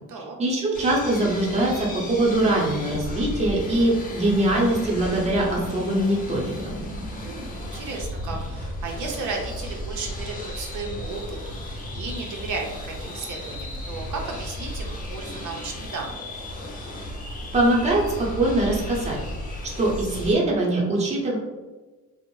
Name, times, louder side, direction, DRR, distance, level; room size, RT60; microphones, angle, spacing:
voice 1, 0.4-6.8 17.5-19.2 19.8-21.4, right 1 dB, 20° right, -3 dB, 0.6 m, -22 dB
sound 1, 0.7-20.3, left 1 dB, 25° left, 0.4 m, -34 dB
voice 2, 7.1-16.2, right 4 dB, 65° right, 0 dB, 0.5 m, -34 dB
2.5 x 2.0 x 3.0 m, 1.2 s
cardioid pair, 130°, 33 cm